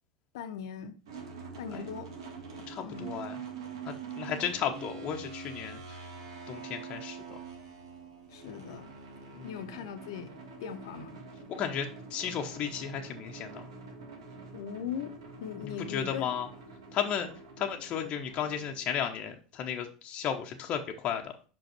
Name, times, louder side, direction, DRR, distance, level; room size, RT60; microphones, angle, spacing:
voice 1, 0.3-1.0 1.6-2.1 2.8-3.2 8.3-8.9 9.4-10.3 10.6-11.2 14.5-15.1 15.4-16.3, left 7 dB, 70° left, 0.9 m, -39 dB
sound 1, 1.1-19.0, right 5 dB, 75° right, 1.8 m, -45 dB
voice 2, 2.7-3.4 4.2-5.8 6.5-7.2 9.3-9.5 11.6-13.6 15.9-16.5 16.9-17.3 17.6-21.5, left 8 dB, 45° left, 0.9 m, -34 dB
5.6 x 5.3 x 4.4 m
hypercardioid pair, 85°, 3 cm